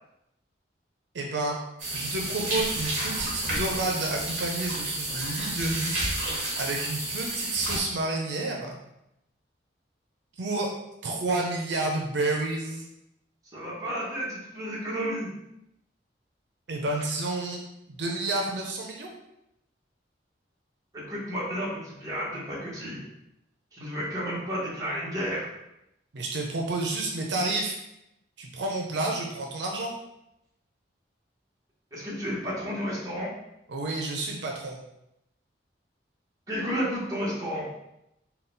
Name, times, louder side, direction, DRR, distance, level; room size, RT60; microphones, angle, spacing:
voice 1, 1.1-1.6 1.9-6.1 6.6-8.8 10.4-10.7 11.0-12.8 16.7-17.6 17.9-19.1 26.1-27.8 28.4-29.9 33.7-34.8, right 2 dB, 75° right, 0 dB, 0.6 m, -30 dB
sound 1, 1.8-7.8, right 1 dB, 40° right, 1.1 m, -31 dB
voice 2, 13.5-15.3 20.9-23.0 23.7-25.5 31.9-33.3 36.5-37.7, equal, 20° right, -6 dB, 1.1 m, -32 dB
3.9 x 2.3 x 3.9 m, 0.84 s
head